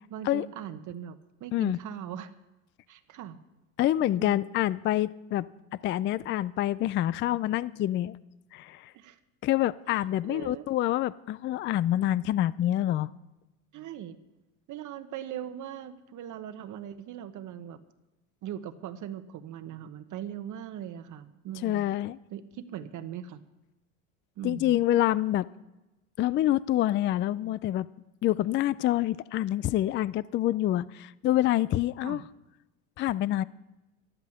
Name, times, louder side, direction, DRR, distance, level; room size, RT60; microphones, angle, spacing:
voice 1, 0.1-2.3 2.9-3.4 4.0-4.4 8.9-9.2 10.2-10.7 13.7-14.2 14.7-17.8 18.4-21.9 22.3-23.4 24.4-24.7 32.0-32.2, right 10 dB, 45° right, 9 dB, 1.2 m, -40 dB
voice 2, 3.8-5.5 5.8-8.2 8.5-8.9 9.4-13.1 21.6-22.2 24.4-25.5 26.2-27.9 28.2-32.2 33.0-33.5, left 13 dB, 30° left, 19 dB, 0.4 m, -27 dB
12.5 x 12.0 x 6.5 m, 1.0 s
hypercardioid pair, 90°, 41 cm